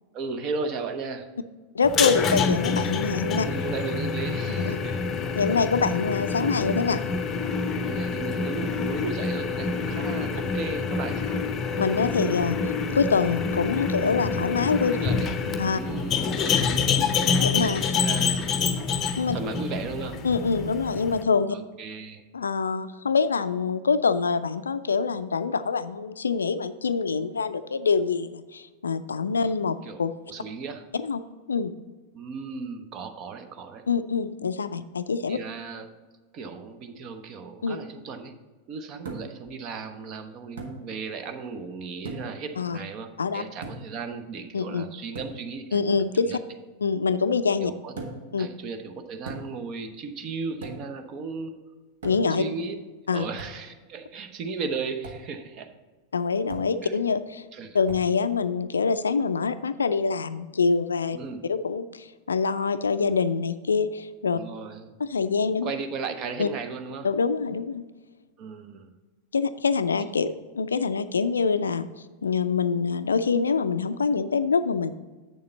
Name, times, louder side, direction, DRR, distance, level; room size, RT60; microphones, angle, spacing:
voice 1, 0.1-1.3 3.4-5.1 7.8-11.4 14.9-15.3 15.6-16.4 17.9-18.6 19.3-20.3 21.5-22.2 29.3-29.5 29.8-30.0 30.3-30.8 32.1-33.8 35.3-35.9 36.3-38.3 38.7-45.9 46.2-46.4 47.6-47.9 48.4-51.6 52.4-52.8 53.1-55.8 56.8-56.9 57.5-57.8 61.1-61.4 64.3-64.9 65.6-67.1 68.4-68.9, right 4 dB, 35° right, 7 dB, 0.8 m, -35 dB
voice 2, 1.7-3.5 4.6-4.8 5.4-7.0 11.8-12.6 12.9-15.0 15.6-15.8 17.4-18.0 19.2-19.4 20.2-21.6 22.3-30.1 31.0-31.2 31.5-31.7 33.9-35.4 37.6-37.8 42.6-42.8 43.2-43.4 44.5-44.9 45.7-46.4 46.8-47.7 48.3-48.5 52.0-52.4 53.1-53.2 56.1-57.4 57.7-61.2 61.4-64.4 65.0-65.7 66.4-66.5 67.0-67.8 69.3-71.9 72.2-74.9, left 5 dB, 70° left, 13 dB, 0.4 m, -25 dB
sound 1, 1.8-21.2, left 5 dB, 25° left, 0.7 m, -27 dB
sound 2, 39.0-39.5 40.6-40.8 42.0-42.4 43.6-44.0 45.1-45.4 48.0-48.3 49.3-49.7 50.6-51.0 52.0-52.4 53.4-53.6 55.0-55.3 56.5-56.8 57.9-58.1, right 3 dB, 60° right, 1.4 m, -38 dB
8.0 x 6.8 x 3.9 m, 1.3 s
figure-of-eight pair, 90°, 0 cm